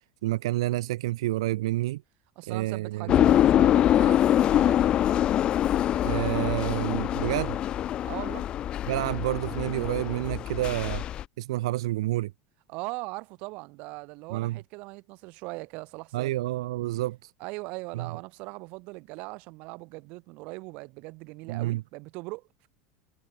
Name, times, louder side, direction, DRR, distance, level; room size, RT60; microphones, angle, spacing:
voice 1, 0.2-2.0 2.5-3.1 6.0-7.6 8.9-11.0 11.4-12.3 14.3-14.6 16.1-17.3 17.9-18.1 21.5-21.8, right 16 dB, 85° right, 2.4 m, -29 dB
voice 2, 2.4-5.0 8.0-8.5 12.7-16.4 17.4-22.7, right 26 dB, 55° right, 6.3 m, -40 dB
sound 1, 3.1-11.2, left 11 dB, 35° left, 1.0 m, -24 dB
supercardioid pair, 140°, 3 cm